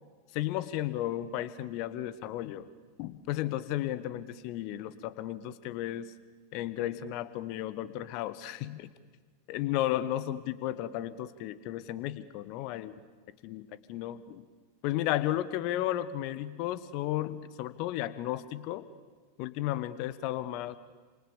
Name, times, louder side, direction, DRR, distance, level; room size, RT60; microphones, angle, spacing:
voice 1, 0.3-2.7 3.0-6.1 6.5-8.9 9.5-12.9 13.4-14.4 14.8-18.9 19.4-20.8, left 13 dB, 45° left, 15 dB, 1.5 m, -34 dB
29.0 x 27.5 x 7.1 m, 1.4 s
figure-of-eight pair, 90°, 0 cm